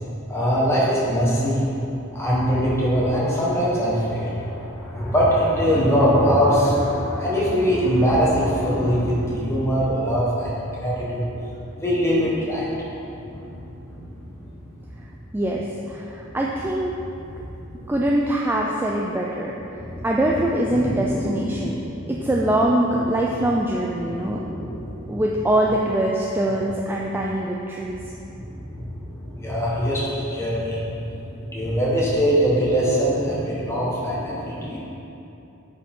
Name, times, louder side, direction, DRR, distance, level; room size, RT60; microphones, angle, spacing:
voice 1, 0.3-1.7 2.1-11.3 11.7-12.7 13.2-13.5 13.8-14.0 19.7-20.0 20.8-22.2 24.1-25.2 28.2-34.8, equal, 15° left, -7 dB, 1.4 m, -22 dB
voice 2, 15.3-16.9 17.9-19.5 20.0-21.8 22.1-24.4 25.1-28.0, right 1 dB, 10° right, -2 dB, 0.3 m, -23 dB
8.1 x 5.0 x 3.7 m, 2.9 s
head